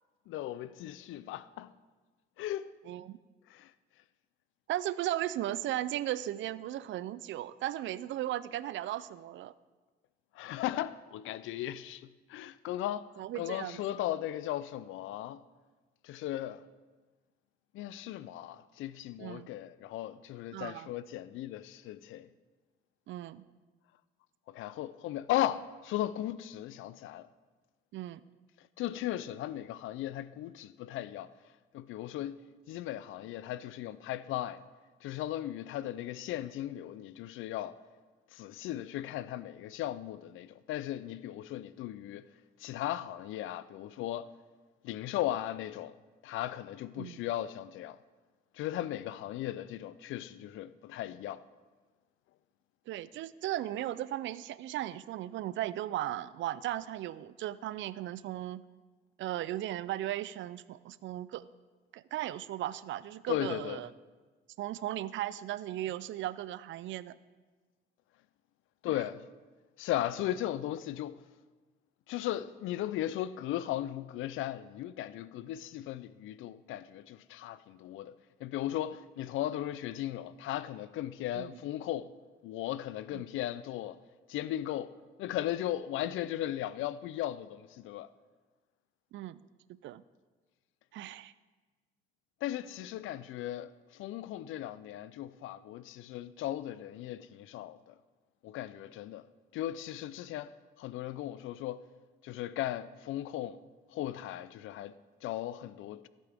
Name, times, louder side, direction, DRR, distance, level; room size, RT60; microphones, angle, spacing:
voice 1, 0.3-1.7 2.4-2.7 3.5-3.7 10.3-13.1 13.4-15.4 16.0-16.6 17.7-22.3 24.5-27.3 28.8-31.3 31.7-32.4 32.7-34.6 35.0-37.8 38.3-42.3 42.6-44.3 44.8-45.9 46.2-48.0 48.5-51.4 63.3-63.8 68.8-69.2 69.8-71.2 72.1-82.1 82.4-84.0 84.3-88.1 92.4-97.9 98.4-99.2 99.5-101.9 102.2-103.6 103.9-106.1, left 13 dB, 85° left, 0.4 m, -37 dB
voice 2, 2.9-3.2 4.7-9.5 13.2-13.8 19.2-19.5 20.5-20.9 23.1-23.4 27.9-28.2 47.0-47.2 52.9-58.6 59.2-61.5 61.9-63.9 64.6-67.2 81.3-81.5 83.1-83.2 89.1-89.4 89.8-90.0 90.9-91.3, right 13 dB, 75° right, 0.4 m, -36 dB
14.5 x 8.4 x 3.5 m
cardioid pair, 90°, 20 cm